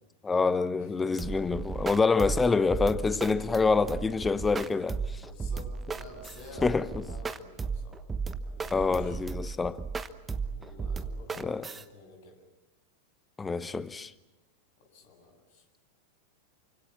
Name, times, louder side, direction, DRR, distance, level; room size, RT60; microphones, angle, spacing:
voice 1, 0.2-5.2 6.6-7.0 8.7-9.8 11.4-11.6 13.4-14.1, left 4 dB, 15° left, 1.0 m, -26 dB
voice 2, 0.8-1.3 5.2-8.0 8.4-9.2 10.5-12.4 14.8-15.6, left 3 dB, 50° left, 7.4 m, -50 dB
sound 1, 1.2-11.8, right 4 dB, 15° right, 1.1 m, -35 dB
29.0 x 25.5 x 6.0 m
figure-of-eight pair, 90°, 0 cm